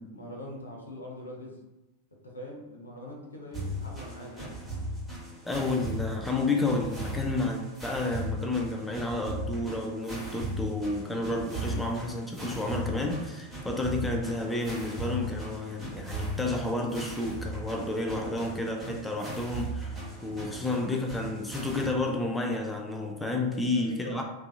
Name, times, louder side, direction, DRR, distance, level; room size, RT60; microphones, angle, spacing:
voice 1, 0.1-1.6 2.2-4.6 23.5-24.2, equal, 75° left, 0 dB, 0.5 m, -42 dB
sound 1, 3.5-21.9, equal, 10° right, 0.7 m, -38 dB
voice 2, 5.5-24.2, left 2 dB, 5° left, 1 dB, 0.3 m, -31 dB
2.6 x 2.3 x 2.3 m, 0.98 s
figure-of-eight pair, 90°, 0 cm